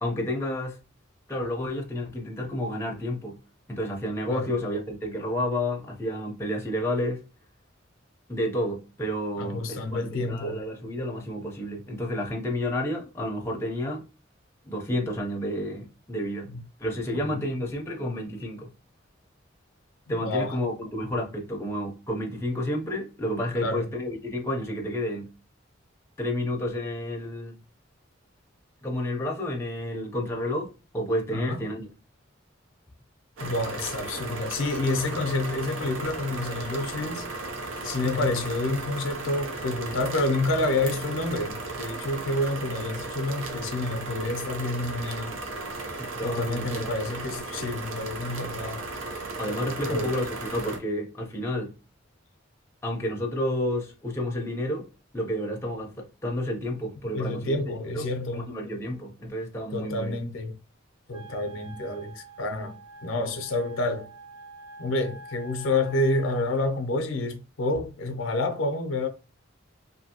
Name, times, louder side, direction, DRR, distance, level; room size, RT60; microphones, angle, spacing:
voice 1, 0.0-0.8 1.3-3.4 3.7-7.3 8.3-14.0 14.6-16.5 16.8-18.7 20.1-25.3 26.2-27.5 28.8-30.7 30.9-31.9 38.0-38.3 46.0-46.9 49.4-51.7 52.8-54.9 55.1-60.2, left 1 dB, 15° left, 0.5 m, -30 dB
voice 2, 9.4-10.6 16.5-16.6 17.2-17.4 20.1-20.6 23.6-23.9 31.3-31.6 33.4-37.2 37.8-45.4 46.2-48.8 49.8-50.1 57.1-58.5 59.7-60.6 61.1-64.1 64.8-69.1, left 2 dB, 75° left, 0.5 m, -29 dB
sound 1, 33.4-50.8, right 3 dB, 80° right, 0.6 m, -35 dB
Wind instrument woodwind instrument, 61.1-66.5, right 2 dB, 20° right, 1.0 m, -46 dB
2.6 x 2.6 x 2.7 m
head